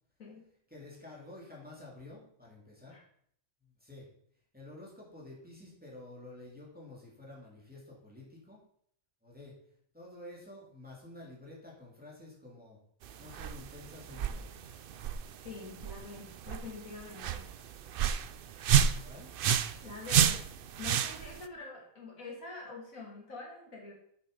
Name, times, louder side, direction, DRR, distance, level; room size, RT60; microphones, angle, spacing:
voice 1, 0.7-3.0 3.6-4.1 4.5-8.6 9.2-9.6 9.9-12.8 13.2-14.8 19.0-19.3, left 2 dB, 5° right, -4 dB, 2.8 m, -50 dB
sound 1, 13.0-21.5, right 9 dB, 65° right, 0.5 m, -31 dB
voice 2, 15.4-17.5 19.8-20.4 20.8-23.9, left 3 dB, 70° left, -1 dB, 2.7 m, -45 dB
8.3 x 6.7 x 5.3 m, 0.66 s
omnidirectional pair, 1.5 m